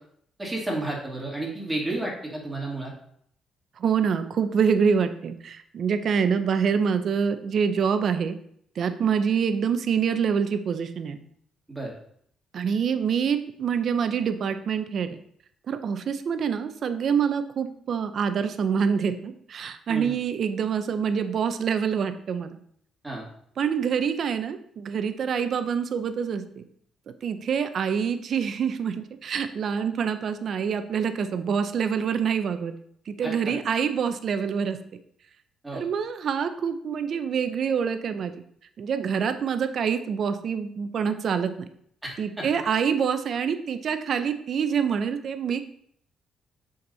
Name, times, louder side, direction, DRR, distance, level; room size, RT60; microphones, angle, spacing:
voice 1, 0.4-2.9 11.7-11.9 19.9-20.1 23.0-23.3 33.2-33.3 35.6-35.9 42.0-42.5, right 2 dB, 15° right, -3 dB, 2.5 m, -31 dB
voice 2, 3.8-8.4 8.8-11.2 12.5-15.1 15.7-22.5 23.6-26.6 27.2-32.7 33.1-34.8 35.7-38.3 38.8-41.5 42.2-45.6, right 7 dB, 60° right, 10 dB, 0.7 m, -26 dB
6.8 x 5.3 x 4.0 m, 0.66 s
cardioid pair, 90°, 0 cm